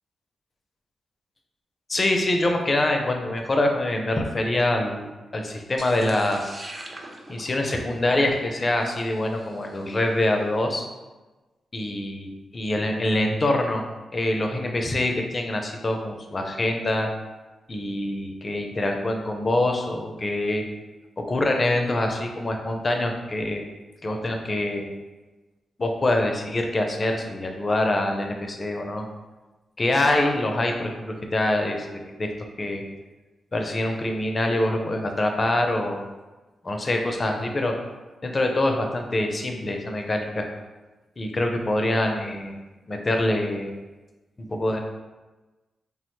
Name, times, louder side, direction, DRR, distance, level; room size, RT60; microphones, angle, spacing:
voice 1, 1.9-5.1 5.3-6.6 7.3-10.8 11.7-12.3 12.5-13.8 14.1-17.1 17.7-20.6 21.2-23.6 24.0-24.8 25.8-29.1 29.8-32.3 32.6-32.8 33.5-36.0 36.6-37.7 38.2-40.5 41.2-42.5 42.9-43.7 44.4-44.8, left 1 dB, 40° left, 3 dB, 0.5 m, -25 dB
sound 1, 5.8-10.1, right 1 dB, 35° right, 0.5 m, -43 dB
3.3 x 2.1 x 3.0 m, 1.2 s
cardioid pair, 55°, 0 cm